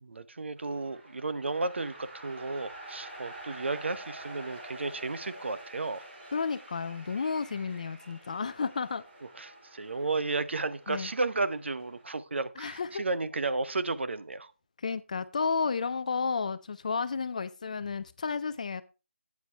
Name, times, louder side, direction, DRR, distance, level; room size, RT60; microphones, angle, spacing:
voice 1, 0.0-6.0 9.4-14.5, right 3 dB, 65° right, 0.8 m, -33 dB
sound 1, 0.6-12.1, right 1 dB, 45° right, 6.2 m, -48 dB
voice 2, 6.3-9.0 10.9-11.1 12.6-13.0 14.8-18.8, left 5 dB, 35° left, 0.4 m, -32 dB
11.0 x 8.4 x 3.3 m
figure-of-eight pair, 165°, 7 cm